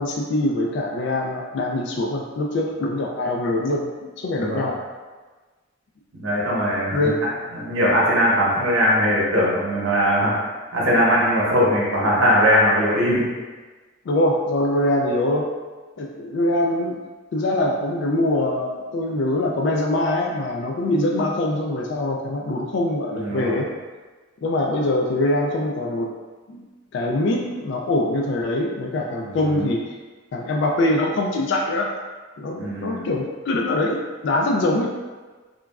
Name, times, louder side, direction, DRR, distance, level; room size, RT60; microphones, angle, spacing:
voice 1, 0.0-4.8 6.9-7.2 14.1-15.5 16.0-17.0 17.3-23.7 24.4-26.1 26.5-26.7 26.9-30.0 30.3-31.9 32.4-34.9, left 1 dB, 60° left, 0 dB, 0.3 m, -23 dB
voice 2, 4.4-4.7 6.1-7.1 7.6-10.3 10.7-13.2 23.2-23.6 29.3-29.7 32.6-33.1, equal, 85° right, -5 dB, 0.9 m, -20 dB
3.1 x 2.3 x 2.3 m, 1.3 s
head